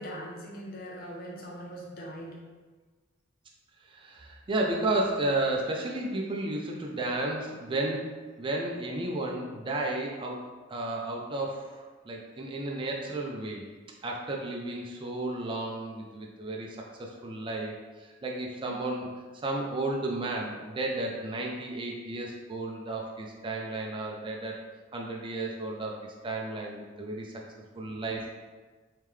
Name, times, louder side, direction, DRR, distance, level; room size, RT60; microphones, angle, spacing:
voice 1, 0.0-2.4, equal, 50° left, -3 dB, 0.8 m, -41 dB
voice 2, 3.8-10.4 10.7-13.6 14.0-17.7 18.0-19.1 19.4-24.5 24.9-26.0 26.2-27.3 27.8-28.4, right 2 dB, 25° right, -1 dB, 0.4 m, -33 dB
3.5 x 3.2 x 3.2 m, 1.3 s
head